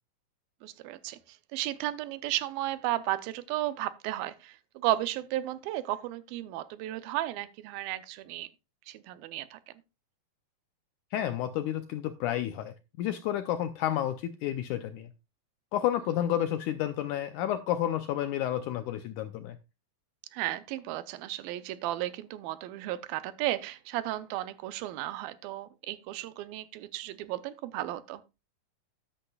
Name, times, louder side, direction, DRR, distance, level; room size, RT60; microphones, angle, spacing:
voice 1, 0.6-8.5 8.9-9.6 20.3-28.2, right 15 dB, 80° right, 2.4 m, -34 dB
voice 2, 11.1-15.1 15.7-19.6, left 11 dB, 80° left, 1.8 m, -31 dB
13.0 x 10.0 x 2.3 m
omnidirectional pair, 4.2 m